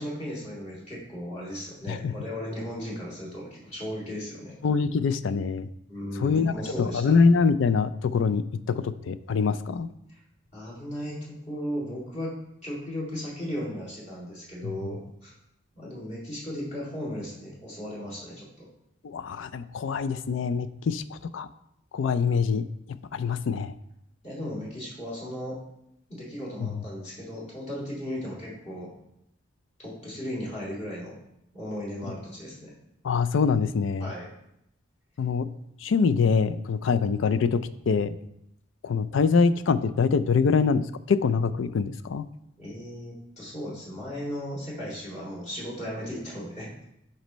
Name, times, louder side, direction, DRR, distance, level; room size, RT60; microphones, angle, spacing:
voice 1, 0.0-4.5 5.9-7.2 10.1-10.2 10.5-12.4 12.6-15.3 15.8-18.7 24.2-25.6 26.1-28.9 29.8-31.2 31.5-32.7 34.0-34.3 42.6-46.7, equal, 35° left, -6 dB, 2.5 m, -36 dB
voice 2, 4.6-5.7 6.2-6.5 6.8-9.9 14.6-14.7 19.0-21.5 21.9-22.6 23.1-23.7 26.6-26.8 33.0-34.1 35.2-35.5 35.8-38.1 38.8-42.3, left 5 dB, 70° left, 13 dB, 0.4 m, -24 dB
10.5 x 4.3 x 3.1 m, 0.80 s
head